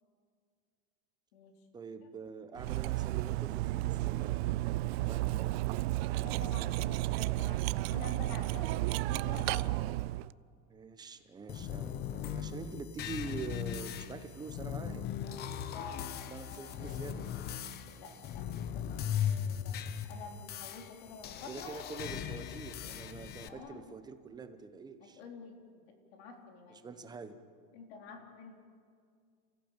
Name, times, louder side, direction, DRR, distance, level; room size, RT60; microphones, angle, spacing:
voice 1, 1.7-4.4 4.8-5.6 10.7-15.1 16.3-17.2 21.4-25.2 26.7-27.4, right 4 dB, 15° right, 9 dB, 1.0 m, -45 dB
Cutlery silverware, 2.6-10.3, right 18 dB, 75° right, 0.5 m, -32 dB
voice 2, 6.2-9.8 15.6-17.3 17.9-19.7 20.1-21.8 23.4-23.8 25.0-25.6 25.9-26.9 27.7-28.7, left 4 dB, 85° left, 3 dB, 4.1 m, -49 dB
sound 1, 11.5-23.5, left 9 dB, 30° left, 1.0 m, -38 dB
29.0 x 15.5 x 9.0 m, 2.2 s
supercardioid pair, 170°, 31 cm